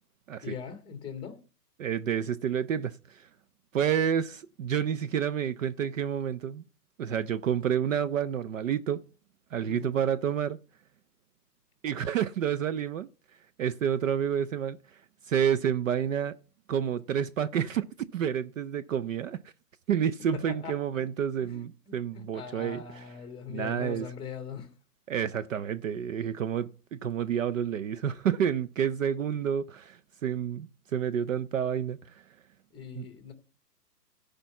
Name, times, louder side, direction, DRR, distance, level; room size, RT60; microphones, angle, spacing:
voice 1, 0.4-1.4 9.6-10.0 20.3-21.1 21.4-24.7 32.7-33.3, left 7 dB, 10° left, 1.6 m, -41 dB
voice 2, 1.8-3.3 3.7-6.6 7.0-9.0 9.5-10.6 11.8-13.1 13.6-14.8 15.3-16.3 16.7-17.9 18.1-19.4 19.9-22.8 23.5-24.1 25.1-32.2 33.0-33.1, right 8 dB, 55° right, 0.6 m, -29 dB
13.5 x 5.2 x 6.9 m
hypercardioid pair, 145°, 49 cm